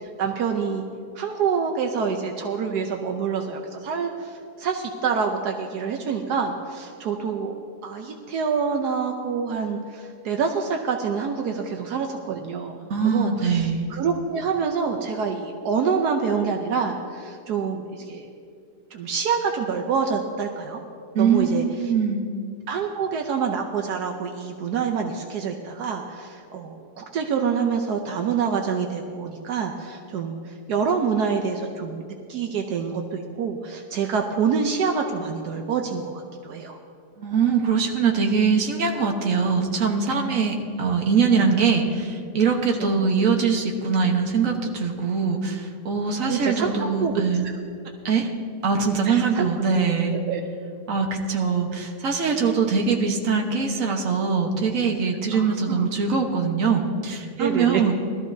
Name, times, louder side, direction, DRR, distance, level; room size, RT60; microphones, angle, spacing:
voice 1, 0.2-0.8 1.2-4.3 4.6-7.5 7.8-12.8 13.0-18.3 18.9-20.8 21.2-21.9 22.7-30.4 30.7-32.0 32.3-36.8 42.8-42.9 46.3-47.2 49.1-49.5 49.8-49.9 50.3-50.4 52.4-52.5 55.3-55.9 57.4-57.8, right 6 dB, 80° right, 3 dB, 1.3 m, -26 dB
voice 2, 12.8-13.9 21.1-22.2 37.2-47.4 48.0-48.3 48.6-50.1 50.9-58.0, right 5 dB, 55° right, 2 dB, 1.6 m, -22 dB
20.5 x 13.5 x 2.7 m, 2.5 s
omnidirectional pair, 1.7 m